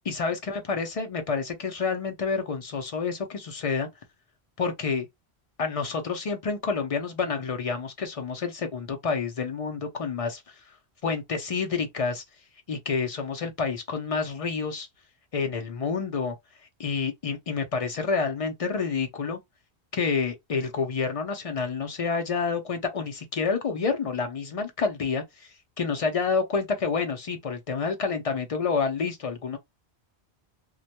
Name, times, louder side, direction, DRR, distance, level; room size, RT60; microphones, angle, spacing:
voice 1, 0.1-3.9 4.6-5.1 5.6-10.5 11.0-12.2 12.7-14.9 15.3-16.4 16.8-19.4 19.9-29.6, left 5 dB, 55° left, 0.4 m, -28 dB
2.2 x 2.1 x 2.8 m
omnidirectional pair, 1.1 m